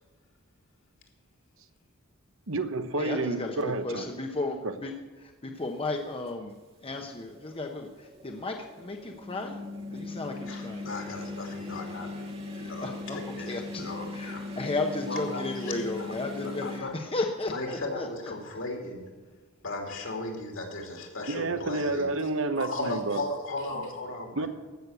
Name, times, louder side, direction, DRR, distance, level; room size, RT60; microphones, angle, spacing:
voice 1, 2.5-4.1 4.6-4.7 21.3-23.2 24.4-24.5, right 2 dB, 65° right, 9 dB, 1.1 m, -30 dB
voice 2, 3.0-4.9 5.2-6.5 6.8-9.6 9.9-10.9 12.5-13.2 13.5-18.3, left 2 dB, 25° left, 3 dB, 0.9 m, -34 dB
sound 1, 5.9-6.0 7.0-16.8, left 2 dB, 25° right, 1.7 m, -39 dB
voice 3, 10.5-12.1 12.7-14.5 15.1-16.2 16.4-16.9 17.5-19.1 19.6-22.3 22.6-24.5, left 2 dB, 65° left, 2 dB, 2.9 m, -36 dB
15.0 x 6.5 x 8.1 m, 1.4 s
head